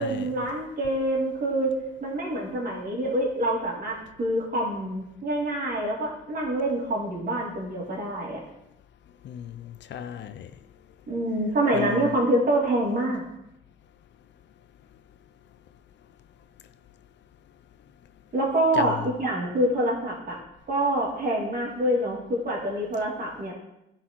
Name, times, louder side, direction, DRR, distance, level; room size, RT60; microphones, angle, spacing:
voice 1, 0.0-1.7 2.0-8.4 11.1-13.2 18.3-20.4 20.7-23.5, right 1 dB, 50° right, 2.8 m, -26 dB
voice 2, 9.2-10.5 11.7-12.1 18.7-19.0, left 9 dB, 65° left, 0.5 m, -35 dB
11.0 x 4.6 x 4.5 m
cardioid pair, 90°, 20 cm